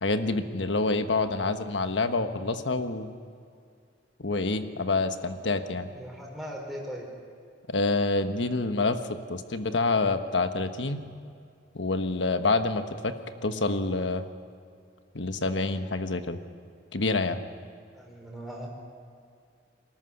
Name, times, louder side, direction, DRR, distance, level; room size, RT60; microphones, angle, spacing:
voice 1, 0.0-3.1 4.2-5.9 7.7-9.0 9.3-11.0 11.7-13.1 13.4-14.2 15.1-16.4 16.9-17.4, left 3 dB, 75° left, 8 dB, 1.3 m, -27 dB
voice 2, 5.9-7.0 17.9-18.7, equal, ahead, -2 dB, 4.7 m, -39 dB
24.5 x 14.0 x 9.9 m, 2.4 s
head